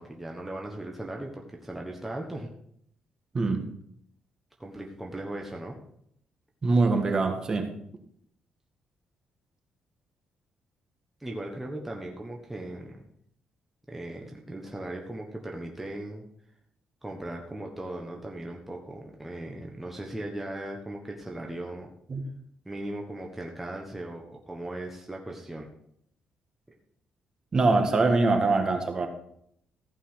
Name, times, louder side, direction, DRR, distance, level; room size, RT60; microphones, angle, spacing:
voice 1, 0.0-2.5 4.6-5.8 11.2-13.0 13.9-16.2 17.0-21.9 22.6-25.7, right 1 dB, 10° right, 0 dB, 1.3 m, -38 dB
voice 2, 6.6-7.7 22.1-22.2 27.5-29.1, right 3 dB, 30° right, 5 dB, 1.6 m, -23 dB
15.0 x 5.6 x 5.7 m, 0.69 s
cardioid pair, 140°, 2 cm